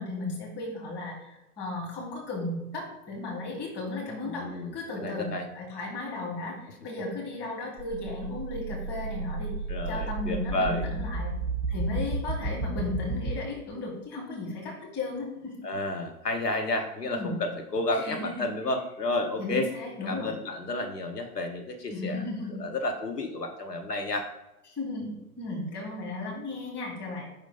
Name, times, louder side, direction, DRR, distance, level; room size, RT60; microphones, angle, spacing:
voice 1, 0.0-9.5 9.9-11.3 11.7-15.7 17.1-17.4 17.9-18.5 19.4-20.3 21.9-22.6 24.8-27.2, left 2 dB, 20° left, -3 dB, 2.1 m, -35 dB
voice 2, 4.2-5.5 9.7-10.9 15.6-19.7 20.1-22.2 22.5-24.3, left 2 dB, 85° left, 5 dB, 0.8 m, -31 dB
sound 1, 7.8-13.3, right 3 dB, ahead, 0.8 m, -32 dB
5.3 x 4.3 x 4.1 m, 0.96 s
figure-of-eight pair, 105°, 46 cm